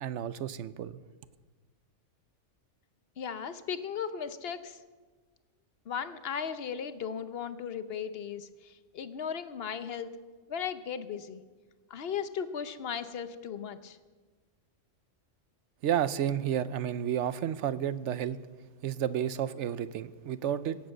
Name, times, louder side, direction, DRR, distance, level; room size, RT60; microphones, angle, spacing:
voice 1, 0.0-1.0 15.8-18.4 18.8-20.8, right 10 dB, 70° right, 0.9 m, -31 dB
voice 2, 3.2-4.8 5.9-10.1 10.5-11.4 11.9-14.0, left 7 dB, 55° left, 0.9 m, -36 dB
17.5 x 7.5 x 7.8 m
omnidirectional pair, 1.3 m